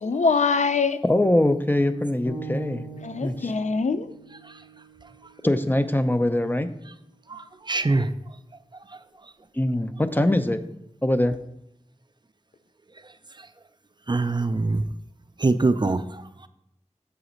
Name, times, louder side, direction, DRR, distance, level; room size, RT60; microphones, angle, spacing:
voice 1, 0.0-1.0 3.0-4.1, left 4 dB, 75° left, 0.4 m, -23 dB
voice 2, 1.0-2.8 3.2-3.5 5.4-6.7 9.6-10.6 11.0-11.4, left 1 dB, 15° left, 0.5 m, -22 dB
sound 1, 2.2-6.4, right 3 dB, 55° left, 3.0 m, -41 dB
voice 3, 7.3-8.1 13.4-13.5 14.1-14.8 15.4-16.5, right 3 dB, 40° right, 0.4 m, -24 dB
6.9 x 4.0 x 5.1 m
wide cardioid pair, 45°, 12 cm